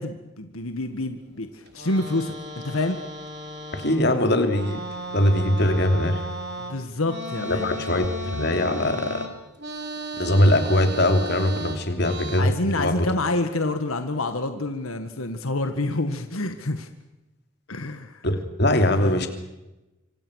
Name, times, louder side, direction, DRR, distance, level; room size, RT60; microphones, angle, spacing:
voice 1, 0.0-1.5 1.7-2.3 2.6-3.0 6.7-8.1 12.4-16.9 17.7-18.2 19.0-19.3, left 2 dB, 90° left, 8 dB, 1.8 m, -27 dB
sound 1, 1.7-4.1 4.4-12.4, right 1 dB, 55° right, 4.5 m, -35 dB
voice 2, 3.7-4.8 5.1-6.2 7.4-9.3 10.2-13.1 18.2-19.3, left 1 dB, 55° left, 6 dB, 3.2 m, -21 dB
26.0 x 26.0 x 6.5 m, 1.0 s
head